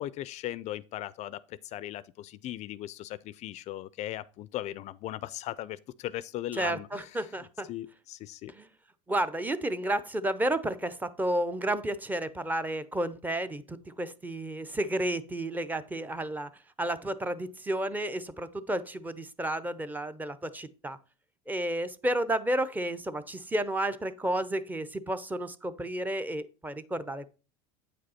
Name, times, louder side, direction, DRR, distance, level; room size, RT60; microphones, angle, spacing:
voice 1, 0.0-7.2 7.7-8.5, left 13 dB, 45° left, 0.4 m, -38 dB
voice 2, 6.6-7.7 8.5-8.7 9.1-16.5 16.8-21.0 21.5-27.3, right 1 dB, 10° right, 0.6 m, -31 dB
8.6 x 5.2 x 4.2 m
supercardioid pair, 110°, 16 cm